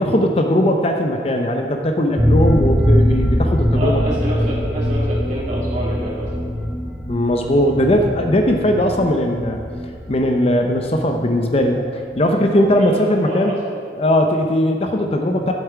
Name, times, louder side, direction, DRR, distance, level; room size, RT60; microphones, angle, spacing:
voice 1, 0.0-4.0 7.1-9.6 10.1-11.9 12.2-13.5 14.0-15.5, left 1 dB, 35° left, 4 dB, 0.6 m, -18 dB
sound 1, 2.2-11.8 12.0-12.1 12.4-12.5, equal, 5° right, 0.8 m, -22 dB
voice 2, 3.7-6.4 12.8-13.0 13.3-13.8, right 1 dB, 45° right, -6 dB, 2.8 m, -27 dB
11.5 x 7.4 x 4.7 m, 2.1 s
head